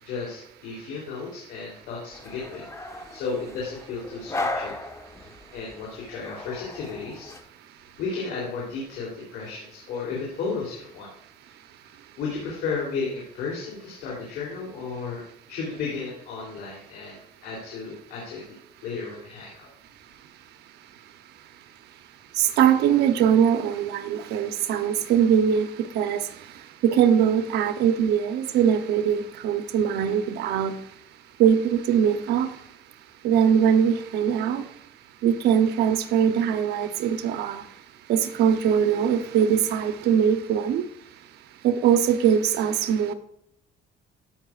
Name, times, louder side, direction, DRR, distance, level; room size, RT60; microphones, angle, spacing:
voice 1, 0.0-4.8 5.5-7.3 8.0-11.1 12.2-15.2 15.5-18.5 18.8-19.7, left 4 dB, 85° left, -4 dB, 3.2 m, -33 dB
sound 1, 2.1-7.4, left 2 dB, 15° left, 1.3 m, -36 dB
voice 2, 22.4-26.3 26.8-30.8 31.4-32.5 33.2-34.6 35.2-37.6 38.1-40.8 41.6-43.1, right 8 dB, 80° right, 10 dB, 0.9 m, -21 dB
14.5 x 5.7 x 2.4 m, 0.73 s
cardioid pair, 110°, 17 cm